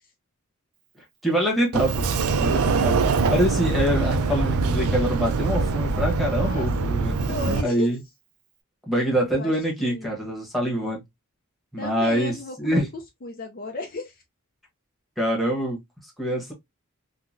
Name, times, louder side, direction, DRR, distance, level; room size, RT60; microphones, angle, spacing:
voice 1, 1.2-8.0 8.9-11.0 11.7-12.9 15.2-15.8 16.2-16.5, equal, ahead, 1.2 m, -25 dB
Sliding door, 1.7-7.6, right 4 dB, 85° right, 0.4 m, -23 dB
voice 2, 6.4-6.9 7.3-8.0 9.3-10.1 11.8-14.2, left 3 dB, 45° left, 0.5 m, -35 dB
3.7 x 2.2 x 2.5 m
head